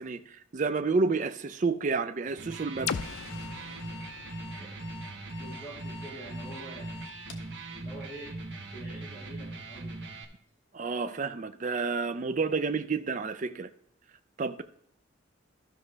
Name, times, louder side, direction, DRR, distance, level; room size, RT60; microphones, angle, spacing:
voice 1, 0.0-2.9 10.7-13.7 14.4-14.6, right 4 dB, 40° right, 0.4 m, -30 dB
Electric guitar, 2.3-10.3, right 2 dB, 55° right, 1.4 m, -40 dB
Alarm, 2.8-7.5, left 6 dB, 65° left, 1.3 m, -48 dB
sound 1, 2.9-6.7, left 7 dB, 90° left, 0.5 m, -40 dB
voice 2, 5.4-7.1 7.4-8.3 8.7-10.2, right 1 dB, 10° left, 2.9 m, -47 dB
13.0 x 6.0 x 3.3 m
head